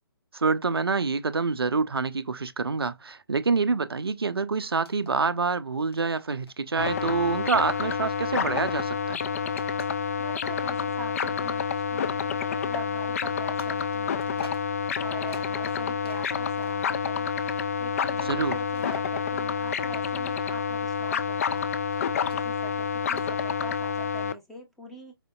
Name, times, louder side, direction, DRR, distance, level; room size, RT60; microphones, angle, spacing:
voice 1, 0.3-9.2 18.3-18.6, right 4 dB, 75° right, 0.4 m, -26 dB
sound 1, 4.8-5.5 5.7-6.7 7.2-8.7 9.5-10.6 11.2-11.4 13.6-16.9 18.4-19.0 21.6-23.4, equal, 85° left, 1.4 m, -51 dB
sound 2, 6.8-24.3, left 6 dB, 40° left, 0.4 m, -28 dB
voice 2, 10.2-14.5 15.0-17.3 17.8-21.7 22.3-25.1, equal, ahead, 0.9 m, -43 dB
4.9 x 2.5 x 2.3 m
figure-of-eight pair, 135°, 13 cm